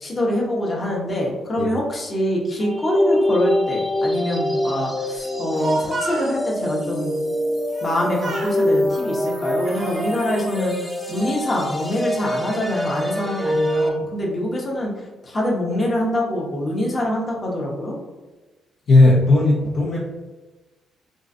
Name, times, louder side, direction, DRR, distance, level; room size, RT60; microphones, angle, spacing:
voice 1, 0.0-7.2 7.8-10.7 11.1-14.9 15.2-18.0, left 1 dB, 30° left, -2 dB, 0.9 m, -24 dB
sound 1, 2.6-13.9, left 1 dB, ahead, 0.6 m, -24 dB
Speech, 5.3-6.3 7.7-7.9 8.2-8.6 9.3-10.1, right 2 dB, 50° right, 0.6 m, -31 dB
voice 2, 18.9-20.0, left 2 dB, 55° left, -4 dB, 0.6 m, -15 dB
3.7 x 2.4 x 2.6 m, 1.2 s
cardioid pair, 90°, 0 cm